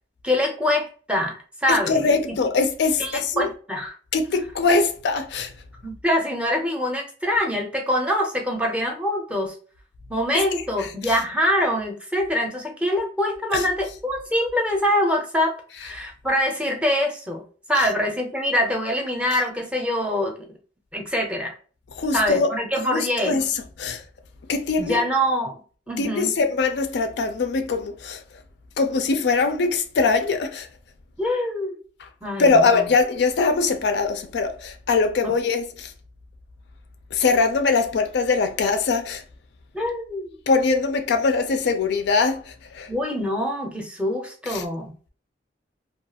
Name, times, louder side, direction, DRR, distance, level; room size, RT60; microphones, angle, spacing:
voice 1, 0.2-2.0 3.0-3.9 5.8-9.5 10.1-15.5 15.8-17.4 17.7-20.6 20.9-21.5 22.1-23.3 24.8-25.5 25.9-26.4 31.2-31.7 32.2-32.9 35.2-35.3 39.7-40.3 42.9-44.9, left 1 dB, 5° right, 0.5 m, -24 dB
voice 2, 1.7-3.5 4.1-5.5 10.8-11.1 13.5-13.6 17.7-17.9 22.0-22.5 22.9-24.0 24.5-25.0 26.0-28.2 28.8-30.7 32.4-35.9 37.1-39.2 40.5-42.9 44.5-44.6, left 4 dB, 65° left, 0.4 m, -22 dB
2.3 x 2.3 x 2.7 m
head